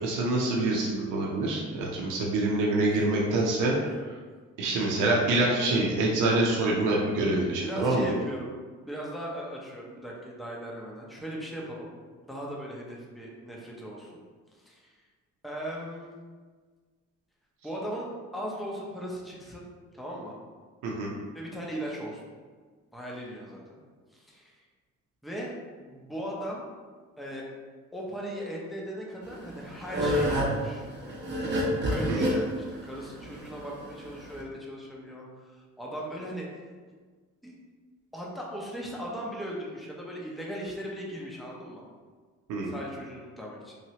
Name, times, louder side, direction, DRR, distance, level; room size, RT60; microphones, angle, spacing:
voice 1, 0.0-3.7 4.6-8.1 20.8-21.1 32.1-32.3 42.5-42.7, right 2 dB, 90° right, -2 dB, 0.6 m, -26 dB
voice 2, 7.6-8.6 8.8-11.9 12.2-14.2 14.5-14.9 15.4-16.2 17.6-19.7 19.9-20.4 21.3-22.3 22.9-23.8 24.1-24.6 25.2-26.7 27.2-27.4 27.9-30.8 31.9-35.5 35.8-36.5 37.4-37.5 38.1-41.8 42.6-43.8, equal, ahead, -3 dB, 0.6 m, -38 dB
sound 1, 29.3-34.4, equal, 35° right, 0.8 m, -28 dB
3.1 x 2.8 x 2.8 m, 1.5 s
cardioid pair, 90°, 30 cm